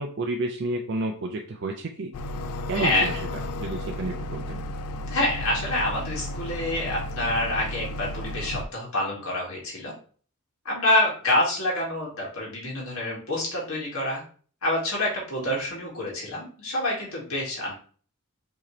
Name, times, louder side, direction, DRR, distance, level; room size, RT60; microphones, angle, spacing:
voice 1, 0.0-2.1 2.7-4.6, right 2 dB, 50° right, 2 dB, 0.4 m, -31 dB
sound 1, 2.1-8.7, left 1 dB, 90° left, 0.4 m, -33 dB
voice 2, 2.7-3.1 5.1-9.9 10.7-14.2 14.6-17.7, left 1 dB, 65° left, -4 dB, 1.9 m, -27 dB
4.9 x 2.9 x 3.1 m, 0.42 s
head